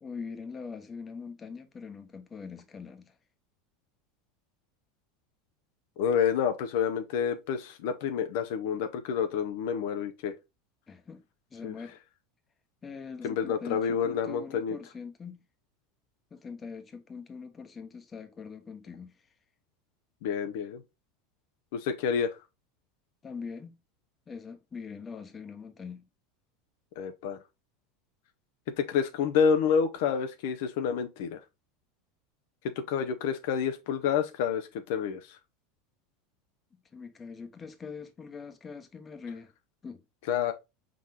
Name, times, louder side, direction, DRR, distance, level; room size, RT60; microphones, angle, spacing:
voice 1, 0.0-3.2 10.9-11.2 11.5-12.0 12.8-15.4 16.3-19.1 23.2-23.8 24.3-26.0 36.7-39.5 39.8-40.0, left 5 dB, 25° left, 0.9 m, -42 dB
voice 2, 6.0-10.3 11.6-11.7 13.2-14.8 20.2-20.8 21.7-22.4 27.0-27.4 28.8-31.4 32.8-35.4 40.3-40.5, left 7 dB, 70° left, 0.6 m, -28 dB
4.8 x 3.8 x 2.8 m
hypercardioid pair, 100°, 0 cm